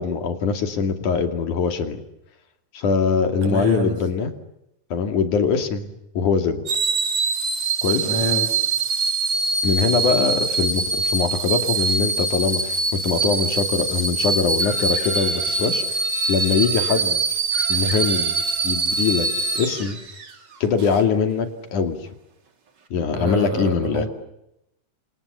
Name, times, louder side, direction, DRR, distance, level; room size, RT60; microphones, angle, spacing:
voice 1, 0.0-2.0 2.7-4.3 4.9-6.6 7.8-8.1 9.6-16.0 16.3-17.4 17.7-18.4 18.6-20.0 20.6-22.0 22.9-24.1, left 5 dB, 70° left, 7 dB, 4.0 m, -22 dB
voice 2, 3.4-3.9 8.0-8.5 23.1-24.1, equal, 85° right, 7 dB, 7.1 m, -26 dB
sound 1, 6.7-20.3 20.8-21.0, right 4 dB, 35° right, 2.5 m, -24 dB
Chicken rooster, 14.6-17.0 17.5-19.9, right 1 dB, 15° left, 4.6 m, -37 dB
28.5 x 27.5 x 6.9 m, 0.84 s
omnidirectional pair, 3.6 m